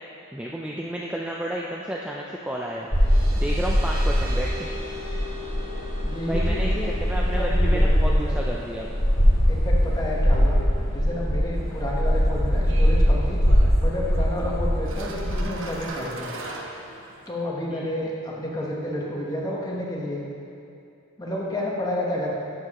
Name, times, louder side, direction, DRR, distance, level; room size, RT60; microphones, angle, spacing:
voice 1, 0.3-2.9 3.4-4.7 6.3-8.9 17.7-17.9, equal, 5° right, -3 dB, 0.3 m, -32 dB
sound 1, 2.5-9.7, left 1 dB, 45° right, 1.2 m, -41 dB
sound 2, 2.9-15.8, equal, 55° left, 2.2 m, -22 dB
voice 2, 6.0-8.5 9.5-10.6 10.9-13.4 13.8-16.3 17.3-20.2 21.2-22.3, left 1 dB, 15° left, -3 dB, 1.1 m, -30 dB
sound 3, 11.5-17.3, right 2 dB, 60° right, 0.8 m, -40 dB
12.0 x 7.1 x 3.0 m, 2.6 s
head